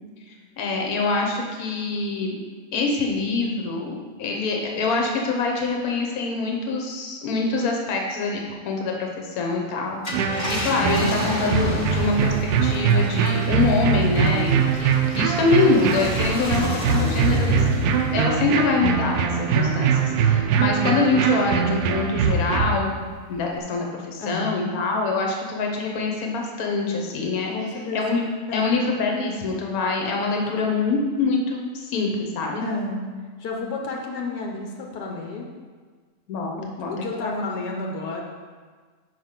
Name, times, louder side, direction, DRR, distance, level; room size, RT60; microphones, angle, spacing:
voice 1, 0.6-2.4 2.7-12.3 12.6-17.6 18.1-27.5 27.9-28.3 28.5-32.6 36.3-36.5 36.8-36.9 37.2-37.4, left 3 dB, 65° left, 1 dB, 1.4 m, -25 dB
Car, 9.9-20.7 21.2-21.3 23.4-23.6, left 1 dB, 25° left, 1.2 m, -32 dB
sound 1, 10.1-22.8, right 6 dB, 85° right, 1.1 m, -22 dB
voice 2, 24.2-24.8 27.5-28.0 28.5-28.8 30.5-30.8 32.6-33.1 33.4-35.5 36.6-38.2, left 3 dB, 85° left, 0 dB, 1.4 m, -31 dB
5.4 x 4.9 x 5.7 m, 1.5 s
omnidirectional pair, 1.7 m